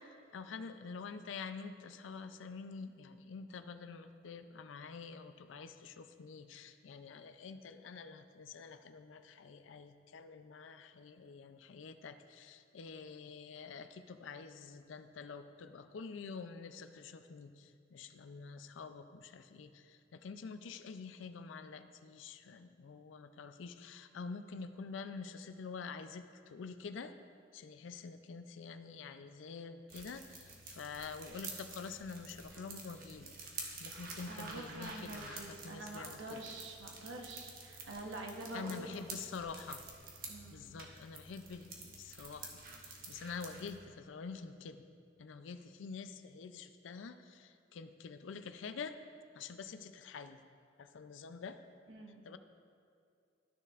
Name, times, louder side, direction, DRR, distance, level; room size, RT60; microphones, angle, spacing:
voice 1, 0.0-27.1 27.5-33.3 33.8-36.4 38.5-39.8 40.5-44.8 45.2-49.0 49.3-50.4 50.8-51.6 52.2-52.4, left 5 dB, 85° left, 10 dB, 0.4 m, -47 dB
sound 1, 29.9-43.7, right 3 dB, 50° right, 1.1 m, -49 dB
voice 2, 34.3-39.1 40.3-40.7 51.9-52.2, right 2 dB, 75° right, 1 dB, 1.0 m, -46 dB
13.0 x 6.6 x 2.4 m, 2.4 s
head